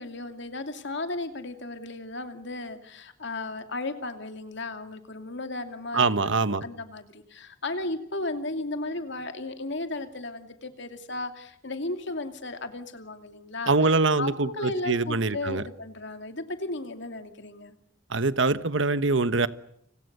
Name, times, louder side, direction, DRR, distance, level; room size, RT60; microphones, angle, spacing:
voice 1, 0.0-13.9 14.2-17.7, left 2 dB, 60° left, 7 dB, 2.6 m, -35 dB
voice 2, 5.9-6.6 13.7-14.5 14.9-15.6 18.1-19.5, right 3 dB, 70° right, 13 dB, 1.3 m, -23 dB
30.0 x 27.0 x 6.8 m, 0.72 s
head